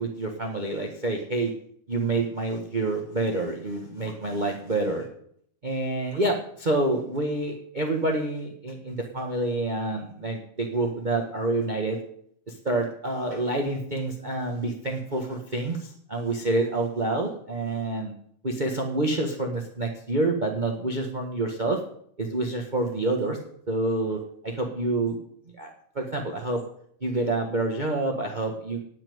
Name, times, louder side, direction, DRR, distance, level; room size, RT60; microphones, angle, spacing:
voice 1, 0.0-1.5 1.9-5.1 5.6-12.0 12.5-18.1 18.4-21.8 22.2-23.4 23.7-25.2 25.6-26.6 27.0-28.8, right 2 dB, 30° right, 1 dB, 0.8 m, -28 dB
17.5 x 5.9 x 9.5 m, 0.66 s
omnidirectional pair, 3.5 m